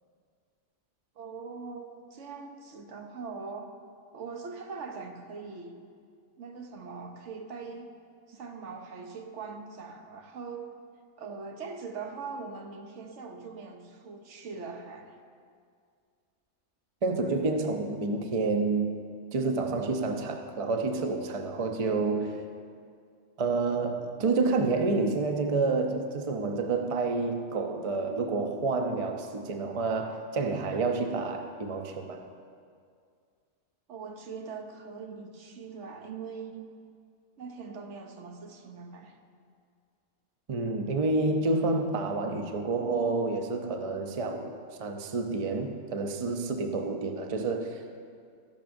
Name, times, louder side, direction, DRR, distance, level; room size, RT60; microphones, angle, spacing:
voice 1, 1.2-3.7 4.1-5.8 6.4-7.9 8.3-10.8 11.2-15.2 33.9-36.7 37.4-39.2, right 5 dB, 60° right, 4 dB, 1.0 m, -41 dB
voice 2, 17.0-18.9 19.3-22.4 23.4-32.2 40.5-47.8, right 3 dB, 45° right, 4 dB, 0.4 m, -29 dB
14.0 x 10.5 x 2.6 m, 2.2 s
omnidirectional pair, 1.5 m